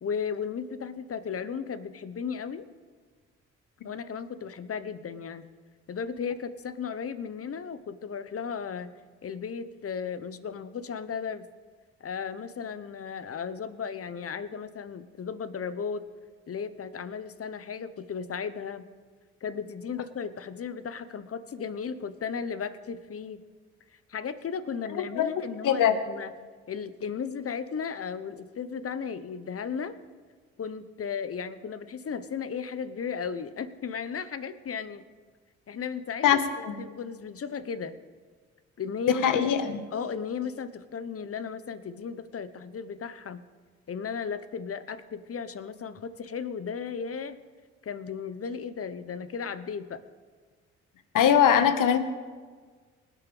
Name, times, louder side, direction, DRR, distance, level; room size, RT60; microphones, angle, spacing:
voice 1, 0.0-2.7 3.8-5.4 5.9-8.9 9.2-11.5 12.0-16.0 16.5-18.9 19.4-23.4 24.1-26.3 26.7-30.0 30.6-35.0 35.7-36.4 36.8-38.0 38.8-39.4 39.9-43.4 43.9-47.4 47.8-50.0, left 6 dB, 40° left, 13 dB, 1.0 m, -35 dB
voice 2, 24.9-25.3 25.6-25.9 36.2-36.8 39.1-39.8 51.1-52.0, left 9 dB, 60° left, 10 dB, 1.3 m, -22 dB
25.0 x 8.7 x 3.4 m, 1.5 s
hypercardioid pair, 45°, 35 cm